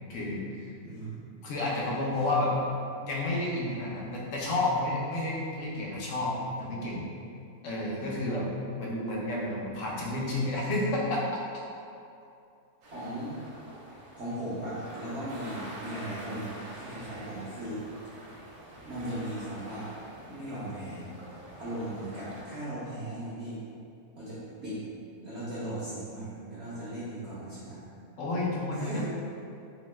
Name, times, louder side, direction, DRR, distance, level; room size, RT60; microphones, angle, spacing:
voice 1, 0.1-0.4 1.4-2.5 3.0-7.0 7.6-8.5 8.8-11.2 28.2-29.1, left 2 dB, 70° left, -4 dB, 0.8 m, -30 dB
voice 2, 0.8-1.3 5.1-5.2 12.9-13.3 14.1-17.8 18.8-19.9 20.3-21.0 21.6-23.6 24.2-24.8 25.2-27.8 28.7-29.1, right 1 dB, 60° right, -12 dB, 0.7 m, -37 dB
sound 1, 12.8-22.4, right 1 dB, 80° right, 1.1 m, -46 dB
2.8 x 2.1 x 3.2 m, 2.5 s
omnidirectional pair, 1.6 m